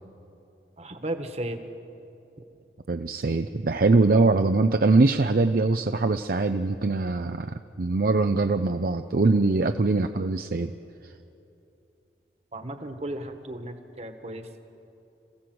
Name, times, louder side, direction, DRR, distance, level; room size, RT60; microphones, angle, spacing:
voice 1, 0.8-1.6 4.1-4.2 12.5-14.5, right 1 dB, 35° right, 7 dB, 1.5 m, -35 dB
voice 2, 2.9-10.7, right 3 dB, 55° right, 7 dB, 0.6 m, -22 dB
27.0 x 16.0 x 7.9 m, 2.8 s
head